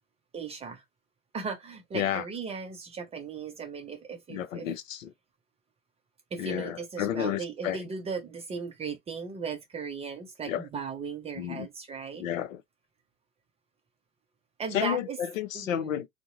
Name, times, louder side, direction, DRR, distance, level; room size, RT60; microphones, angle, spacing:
voice 1, 0.3-0.8 1.3-4.7 6.3-12.2 14.6-15.2 15.5-15.9, right 5 dB, 15° right, 0.5 m, -37 dB
voice 2, 1.9-2.3 4.3-5.1 6.4-7.8 10.5-10.7 11.4-11.7 12.1-12.6 14.7-16.1, left 10 dB, 70° left, 0.7 m, -31 dB
3.5 x 2.1 x 2.8 m
hypercardioid pair, 100°, 41 cm